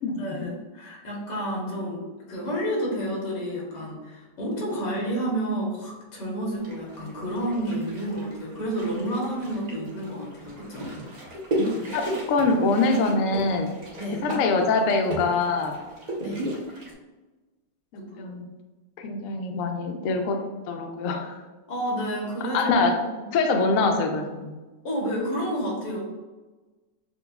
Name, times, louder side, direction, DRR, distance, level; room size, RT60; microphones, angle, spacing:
voice 1, 0.1-10.9 14.0-14.2 16.2-16.4 18.0-18.3 21.7-22.7 23.0-23.2 24.8-26.0, right 1 dB, 70° left, -3 dB, 1.7 m, -30 dB
sound 1, 6.6-16.9, equal, 55° right, 0.4 m, -35 dB
voice 2, 11.9-13.7 14.2-15.7 17.9-18.4 19.0-20.4 20.7-21.4 22.5-23.0 23.3-24.5, left 3 dB, 85° left, 4 dB, 0.7 m, -24 dB
6.8 x 2.3 x 2.3 m, 1.2 s
omnidirectional pair, 2.0 m